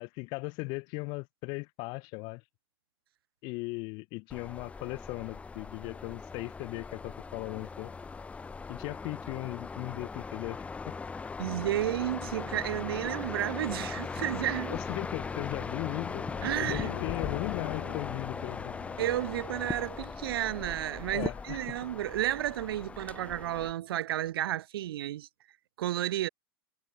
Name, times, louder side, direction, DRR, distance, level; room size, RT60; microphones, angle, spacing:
voice 1, 0.0-2.4 3.4-7.9 8.7-11.0 14.7-16.3 16.6-18.8 21.1-21.6, left 29 dB, 40° left, 0.4 m, -38 dB
sound 1, 4.3-23.7, left 4 dB, 10° left, 1.1 m, -39 dB
voice 2, 11.4-14.8 16.4-17.0 19.0-25.3 25.8-26.3, right 13 dB, 80° right, 0.6 m, -32 dB
sound 2, 14.1-20.8, left 17 dB, 60° left, 1.3 m, -43 dB
supercardioid pair, 140°, 12 cm